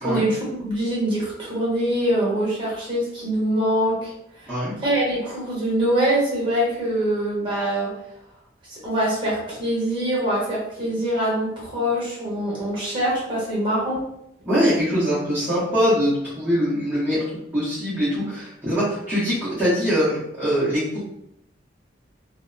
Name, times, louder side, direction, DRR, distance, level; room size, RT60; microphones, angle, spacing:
voice 1, 0.0-4.1 4.4-4.5 4.8-7.9 8.7-14.0, right 1 dB, 30° right, -6 dB, 1.0 m, -24 dB
voice 2, 14.5-17.2 17.5-21.0, equal, 10° right, -12 dB, 0.8 m, -22 dB
2.6 x 2.1 x 2.5 m, 0.80 s
head